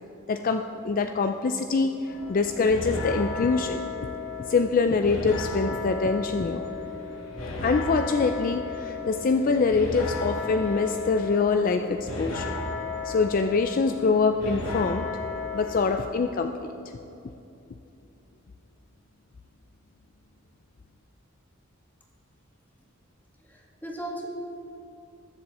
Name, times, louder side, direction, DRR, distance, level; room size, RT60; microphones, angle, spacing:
voice 1, 0.3-3.8 4.5-6.6 7.6-12.6 13.0-15.1 15.5-16.7, left 4 dB, 40° left, 6 dB, 0.4 m, -24 dB
sound 1, 2.1-16.0, left 3 dB, 85° left, 2.3 m, -34 dB
voice 2, 23.4-24.3, right 1 dB, 10° left, -2 dB, 1.7 m, -37 dB
20.5 x 7.1 x 4.2 m, 2.9 s
head